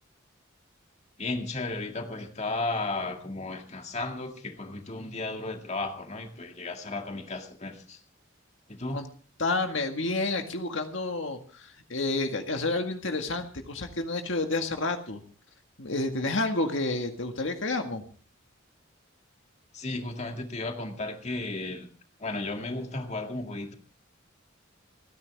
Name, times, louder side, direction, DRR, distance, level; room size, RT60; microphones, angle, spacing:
voice 1, 1.2-8.0 8.7-9.0 19.7-21.9 22.2-23.7, left 2 dB, 35° left, 4 dB, 2.1 m, -34 dB
voice 2, 9.4-15.2 15.8-18.0, left 2 dB, 65° left, 5 dB, 1.9 m, -30 dB
30.0 x 10.5 x 3.5 m, 0.38 s
head